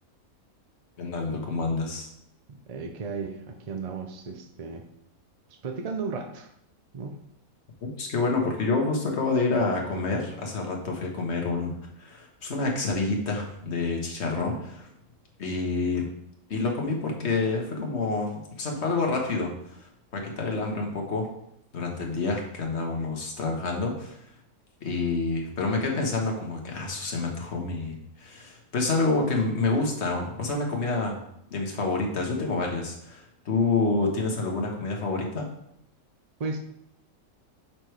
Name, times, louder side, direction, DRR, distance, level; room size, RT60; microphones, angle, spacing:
voice 1, 1.0-2.1 7.8-14.9 15.4-16.1 16.5-19.5 20.1-21.3 21.7-24.2 24.8-31.2 31.5-35.5, left 3 dB, 50° left, 1 dB, 1.5 m, -28 dB
voice 2, 2.5-4.8 5.6-6.5 6.9-7.2 36.4-36.6, right 4 dB, 55° right, 4 dB, 0.4 m, -34 dB
6.1 x 4.9 x 4.6 m, 0.74 s
omnidirectional pair, 1.5 m